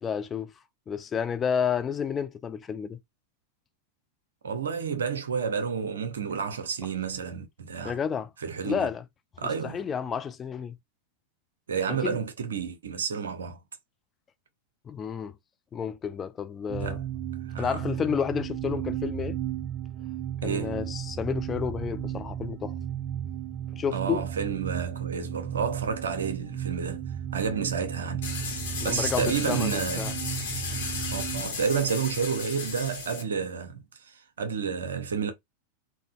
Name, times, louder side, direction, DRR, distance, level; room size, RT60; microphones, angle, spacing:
voice 1, 0.0-0.5 0.9-3.0 7.8-8.3 8.6-9.0 9.6-10.8 11.9-12.2 14.9-15.4 15.7-17.0 17.6-19.4 20.4-22.7 23.7-24.2 28.8-30.1, left 7 dB, 20° left, 0.3 m, -30 dB
voice 2, 4.4-8.0 8.4-8.9 9.4-9.8 11.7-13.6 16.8-17.0 17.5-17.8 20.4-20.9 23.9-27.0 27.3-28.2 28.6-30.2 31.1-35.3, right 6 dB, 65° right, 0.6 m, -30 dB
sound 1, 16.7-31.4, right 10 dB, 25° right, 0.6 m, -34 dB
sound 2, 28.2-33.2, left 5 dB, 60° left, 1.0 m, -34 dB
3.7 x 2.1 x 2.3 m
figure-of-eight pair, 90°, 0 cm